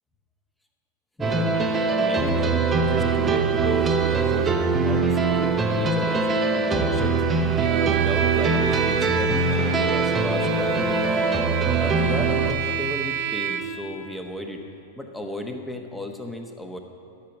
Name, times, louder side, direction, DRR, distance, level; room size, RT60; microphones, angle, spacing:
sound 1, 1.2-12.5, right 4 dB, 20° right, 0.8 m, -22 dB
voice 1, 2.0-6.3 6.6-7.2 7.6-10.8 11.8-14.6 15.0-16.8, left 1 dB, 5° left, 4 dB, 1.1 m, -34 dB
Bowed string instrument, 7.6-13.9, right 8 dB, 60° right, 1.2 m, -29 dB
11.5 x 5.9 x 7.1 m, 2.8 s
hypercardioid pair, 105°, 0 cm